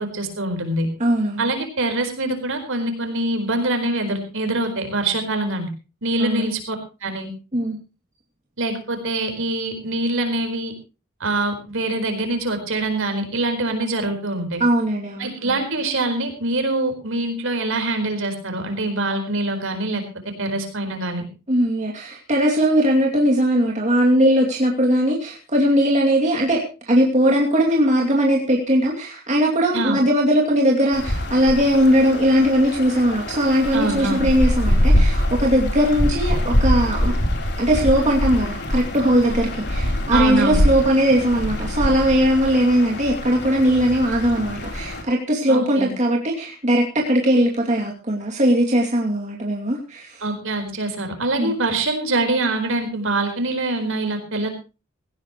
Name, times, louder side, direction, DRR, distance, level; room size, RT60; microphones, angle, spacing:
voice 1, 0.0-0.9 1.4-5.7 6.0-6.8 7.0-7.3 8.6-10.7 11.2-14.6 15.2-20.0 20.4-21.2 29.7-30.0 33.7-34.3 40.1-40.6 45.5-45.9 50.2-54.5, right 2 dB, 65° right, 6 dB, 4.5 m, -24 dB
voice 2, 1.0-1.4 6.2-6.4 7.5-7.8 14.6-15.3 21.5-37.1 37.6-50.2 51.4-51.5, equal, 35° right, -1 dB, 2.6 m, -19 dB
sound 1, 30.9-45.0, equal, 55° left, 3.7 m, -23 dB
17.5 x 17.0 x 3.1 m, 0.32 s
head